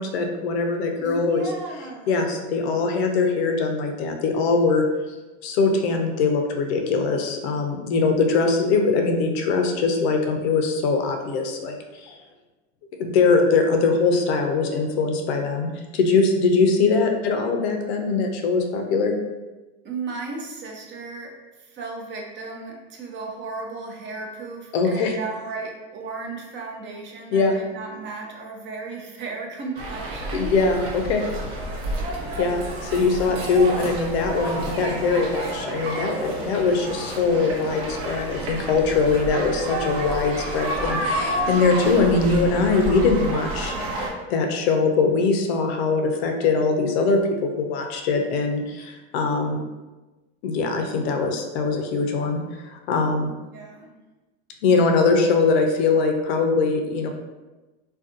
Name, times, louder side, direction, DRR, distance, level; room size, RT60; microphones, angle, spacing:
voice 1, 0.0-1.5 2.1-4.8 5.4-12.2 13.0-19.2 24.7-25.1 27.3-27.6 30.3-31.2 32.4-49.6 50.4-53.3 54.6-57.1, left 4 dB, 85° left, 4 dB, 0.5 m, -22 dB
voice 2, 1.0-2.3 19.8-30.6 53.4-53.9, right 3 dB, 40° right, 0 dB, 0.6 m, -35 dB
sound 1, 29.7-44.1, right 1 dB, 80° right, 0.8 m, -30 dB
2.5 x 2.2 x 2.5 m, 1.1 s
supercardioid pair, 110°, 31 cm